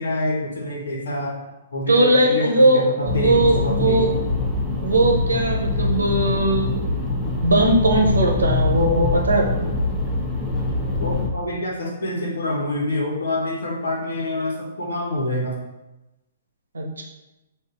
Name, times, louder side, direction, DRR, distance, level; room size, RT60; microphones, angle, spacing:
voice 1, 0.0-1.3 1.7-4.1 11.0-15.6, left 1 dB, 70° left, -1 dB, 1.1 m, -26 dB
voice 2, 1.9-4.2 4.8-6.7 7.4-9.7 16.7-17.0, right 1 dB, 80° right, 0 dB, 0.8 m, -19 dB
sound 1, 3.1-11.3, left 3 dB, ahead, 0.7 m, -24 dB
6.5 x 2.6 x 2.5 m, 0.99 s
figure-of-eight pair, 125°, 0 cm